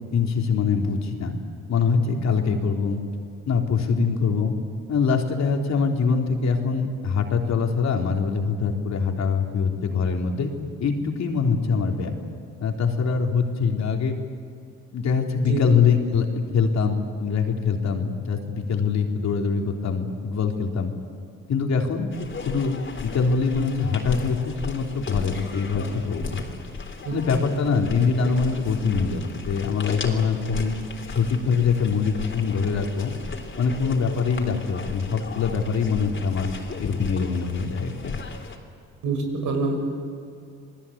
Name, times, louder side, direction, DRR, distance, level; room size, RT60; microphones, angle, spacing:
voice 1, 0.1-1.4 1.7-3.0 3.5-4.5 4.9-10.5 10.8-12.2 12.6-14.1 14.9-20.9 21.5-22.1 22.4-26.4 27.1-30.7 31.1-33.1 33.6-36.5 36.8-38.2, left 5 dB, 60° left, 3 dB, 3.4 m, -23 dB
sound 1, 22.1-38.6, left 4 dB, 40° left, 3.8 m, -35 dB
voice 2, 39.0-39.8, right 3 dB, 85° right, 3 dB, 6.3 m, -25 dB
28.5 x 20.0 x 8.6 m, 2.4 s
cardioid pair, 90°, 30 cm